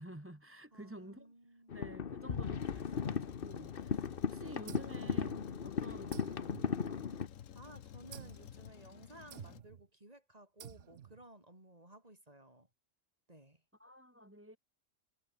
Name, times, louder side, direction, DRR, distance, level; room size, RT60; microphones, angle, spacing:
voice 1, 0.0-1.3 1.7-7.0 13.8-14.6, equal, 10° right, 2.3 m, -51 dB
voice 2, 0.7-1.7 2.3-2.6 7.5-12.7 13.3-13.6, right 1 dB, 30° right, 4.5 m, -57 dB
sound 1, 1.7-7.3, left 6 dB, 45° left, 1.1 m, -37 dB
Truck, 2.6-9.6, left 10 dB, 75° left, 1.3 m, -52 dB
sound 2, 4.7-5.7 6.1-7.4 8.1-8.5 9.3-9.9 10.6-11.2, right 10 dB, 65° right, 1.1 m, -51 dB
omnidirectional pair, 1.4 m